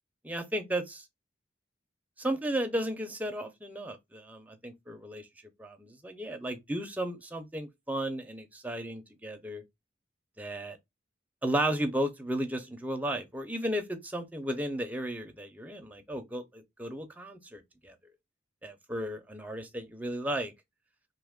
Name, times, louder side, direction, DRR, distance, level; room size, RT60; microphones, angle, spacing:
voice 1, 0.2-1.0 2.2-5.3 5.6-9.6 10.4-10.8 11.4-17.9 18.6-20.5, right 1 dB, 10° right, 0.5 m, -34 dB
2.8 x 2.3 x 3.5 m
head